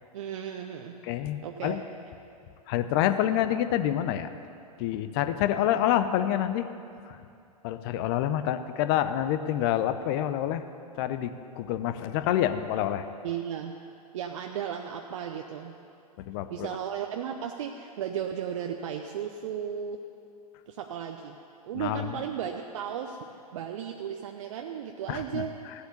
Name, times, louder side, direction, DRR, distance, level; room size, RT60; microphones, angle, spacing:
voice 1, 0.1-1.0 1.4-1.8 13.2-13.8 14.1-15.7 16.5-20.0 20.7-21.4 21.6-25.5, right 8 dB, 50° right, 3 dB, 0.8 m, -35 dB
voice 2, 1.0-1.8 2.7-4.3 4.8-6.7 7.1-7.2 7.6-10.6 11.0-13.1 16.2-16.8 21.7-22.2 25.1-25.7, left 11 dB, 40° left, 10 dB, 0.8 m, -27 dB
16.0 x 8.1 x 8.2 m, 2.5 s
figure-of-eight pair, 100°, 20 cm